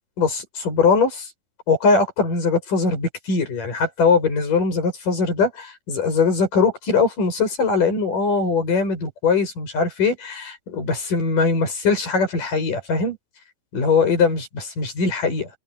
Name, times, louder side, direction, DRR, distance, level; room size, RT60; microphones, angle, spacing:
voice 1, 0.2-1.3 1.7-13.2 13.7-15.5, left 4 dB, 75° left, 9.5 m, -21 dB
omnidirectional pair, 3.8 m